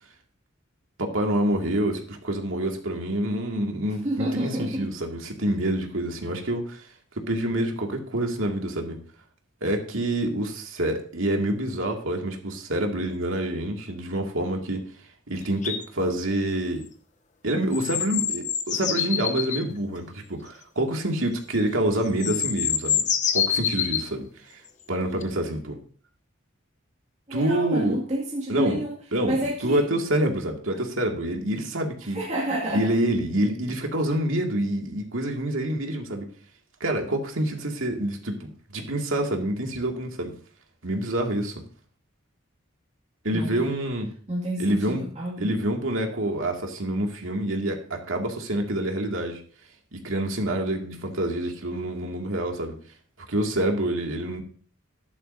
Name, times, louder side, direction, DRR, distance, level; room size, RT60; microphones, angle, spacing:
voice 1, 1.0-6.9 7.2-9.0 9.6-14.9 15.3-16.8 17.4-23.0 23.3-24.6 24.9-25.8 27.3-28.0 28.5-28.8 29.1-29.3 29.6-32.2 32.7-36.3 36.8-40.3 40.8-41.5 43.2-44.1 44.6-45.1 45.4-49.4 49.9-52.8 53.3-54.4, right 1 dB, 80° right, 2 dB, 2.3 m, -27 dB
voice 2, 4.0-4.9 22.3-22.4 27.3-29.0 29.2-29.8 32.1-32.9 43.3-43.7 44.3-45.5, right 1 dB, 35° right, -4 dB, 2.2 m, -29 dB
sound 1, 15.6-15.8 17.7-19.6 21.6-21.7 22.1-24.1 25.2-25.3, left 8 dB, 35° left, 0.8 m, -26 dB
13.5 x 11.0 x 2.7 m, 0.43 s
head